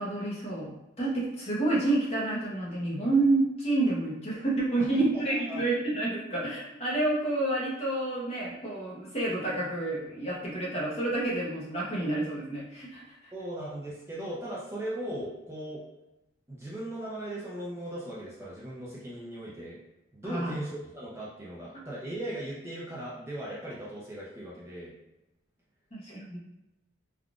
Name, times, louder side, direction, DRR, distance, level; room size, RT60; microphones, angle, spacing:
voice 1, 0.0-13.3 20.2-20.5 25.9-26.4, right 2 dB, 30° left, -5 dB, 0.8 m, -29 dB
voice 2, 4.8-5.6 13.3-15.8 16.5-19.8 20.1-24.9, right 1 dB, 15° right, -7 dB, 0.5 m, -38 dB
3.5 x 2.4 x 2.4 m, 0.94 s
head